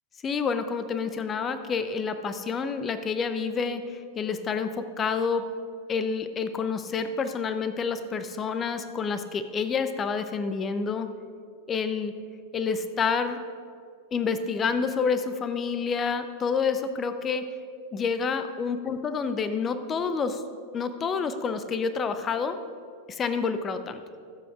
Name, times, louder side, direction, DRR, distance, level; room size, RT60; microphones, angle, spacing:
voice 1, 0.2-5.5 5.9-11.1 11.7-12.1 12.5-13.4 14.1-17.5 17.9-20.4 20.7-22.6 23.1-24.0, left 5 dB, 25° left, 10 dB, 0.6 m, -28 dB
21.0 x 7.6 x 2.4 m, 2.2 s
figure-of-eight pair, 90°, 0 cm